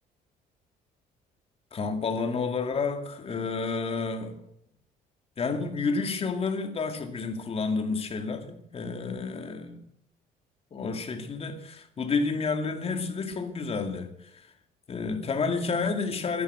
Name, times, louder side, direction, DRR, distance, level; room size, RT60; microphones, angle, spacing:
voice 1, 1.7-4.4 5.4-9.8 10.7-14.5 14.9-16.4, left 4 dB, 35° left, 2.4 m, -30 dB
13.5 x 12.0 x 8.2 m
cardioid pair, 110°, 17 cm